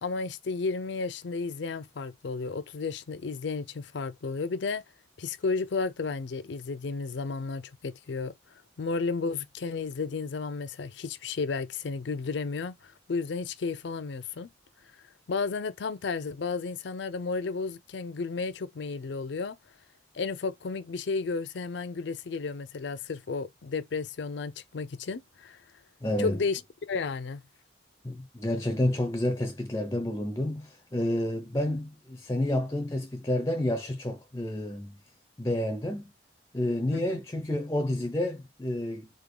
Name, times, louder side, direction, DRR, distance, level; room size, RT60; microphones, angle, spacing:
voice 1, 0.0-4.8 5.2-8.3 8.8-14.5 15.3-19.6 20.1-25.6 26.2-27.4 36.9-37.2, left 4 dB, 65° left, 0.5 m, -33 dB
voice 2, 26.0-26.4 28.0-35.0 35.4-36.1 36.5-39.1, left 1 dB, 15° left, 0.5 m, -30 dB
3.7 x 3.6 x 3.7 m
head